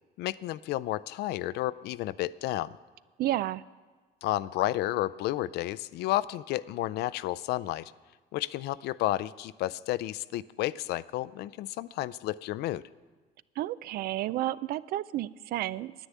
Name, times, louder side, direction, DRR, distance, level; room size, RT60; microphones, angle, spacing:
voice 1, 0.2-2.8 4.2-7.9 8.3-12.8, left 15 dB, 75° left, 16 dB, 0.4 m, -31 dB
voice 2, 3.2-3.6 13.6-15.9, right 14 dB, 65° right, 19 dB, 0.4 m, -31 dB
9.9 x 9.5 x 8.3 m, 1.4 s
cardioid pair, 110°, 17 cm